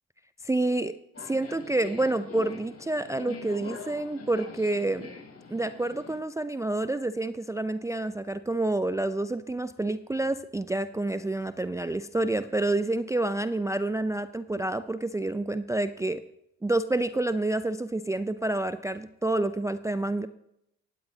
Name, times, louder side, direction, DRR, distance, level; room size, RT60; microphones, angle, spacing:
voice 1, 0.4-0.9 1.2-5.1 5.5-16.2 16.6-20.3, right 2 dB, 10° right, 12 dB, 0.5 m, -28 dB
Subway metro underground, 1.1-6.2, left 4 dB, 35° left, 3.9 m, -43 dB
18.0 x 16.5 x 2.8 m, 0.80 s
hypercardioid pair, 60°, 41 cm